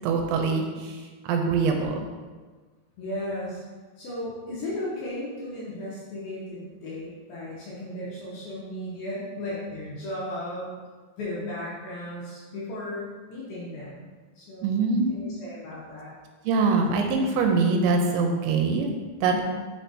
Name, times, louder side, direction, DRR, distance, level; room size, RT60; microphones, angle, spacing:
voice 1, 0.0-2.0 14.6-15.1 16.4-18.9 19.2-19.4, right 4 dB, 85° right, 3 dB, 2.8 m, -23 dB
voice 2, 3.0-3.6 4.0-10.7 11.2-14.1 14.4-14.8 15.1-16.1 19.3-19.4, left 1 dB, 70° left, -7 dB, 2.4 m, -35 dB
6.5 x 5.7 x 2.7 m, 1.4 s
omnidirectional pair, 5.3 m